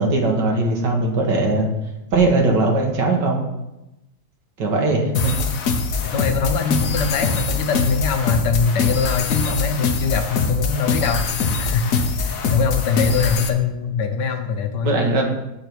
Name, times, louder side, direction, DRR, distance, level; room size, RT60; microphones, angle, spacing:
voice 1, 0.0-1.7 2.1-3.4 4.6-5.3 14.8-15.2, right 2 dB, 80° right, 1 dB, 2.1 m, -19 dB
sound 1, 5.1-13.5, left 4 dB, 60° left, 1.1 m, -23 dB
voice 2, 6.0-14.9, left 5 dB, 75° left, 7 dB, 1.5 m, -23 dB
7.6 x 6.8 x 4.6 m, 0.93 s
omnidirectional pair, 1.9 m